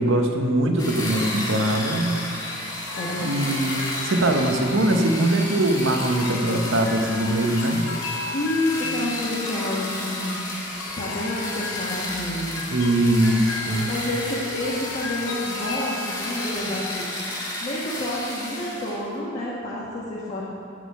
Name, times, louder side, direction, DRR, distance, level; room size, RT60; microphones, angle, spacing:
voice 1, 0.0-2.2 3.2-7.9 12.7-13.9, right 1 dB, 75° right, 4 dB, 0.9 m, -22 dB
sound 1, 0.8-19.0, left 1 dB, 20° left, 1.5 m, -32 dB
sound 2, 2.9-16.5, left 4 dB, 70° left, 0.8 m, -36 dB
voice 2, 3.0-3.5 8.3-10.4 11.0-12.6 13.9-17.1 17.6-20.4, left 1 dB, 40° left, -7 dB, 1.2 m, -29 dB
6.4 x 6.2 x 7.5 m, 2.8 s
head